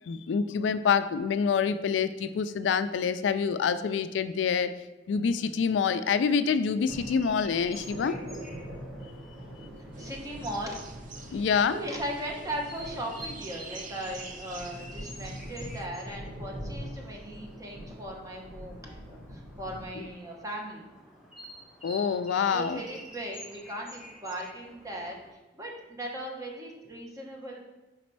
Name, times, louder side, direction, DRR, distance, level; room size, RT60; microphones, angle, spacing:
voice 1, 0.1-4.7 5.1-8.2 11.3-11.8 21.8-22.8, left 6 dB, 85° left, 12 dB, 0.3 m, -26 dB
sound 1, 6.9-25.3, equal, 5° right, 1.3 m, -49 dB
sound 2, 6.9-19.9, equal, 85° right, 2.0 m, -43 dB
sound 3, 9.9-15.9, right 5 dB, 50° right, 0.5 m, -48 dB
voice 2, 10.0-10.8 11.7-20.9 22.5-27.7, right 1 dB, 20° right, 0 dB, 0.9 m, -38 dB
5.1 x 4.1 x 4.5 m, 1.1 s
head